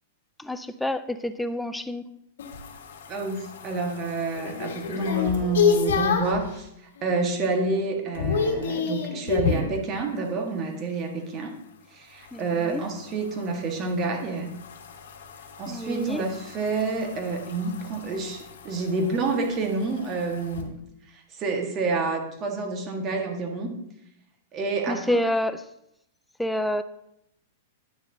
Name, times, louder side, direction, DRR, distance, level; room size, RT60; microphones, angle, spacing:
voice 1, 0.4-2.0 12.3-12.8 15.7-16.2 24.9-25.6 26.4-26.8, left 1 dB, 5° left, 10 dB, 0.4 m, -28 dB
sound 1, 2.4-6.5 7.0-7.4 7.6-9.7 12.2-20.6, left 6 dB, 80° left, 1.3 m, -30 dB
voice 2, 3.1-11.5 11.9-14.5 15.6-20.8 21.1-23.7 24.5-25.2, right 3 dB, 30° right, 3 dB, 1.4 m, -28 dB
9.9 x 6.7 x 2.7 m, 0.80 s
hypercardioid pair, 135°, 0 cm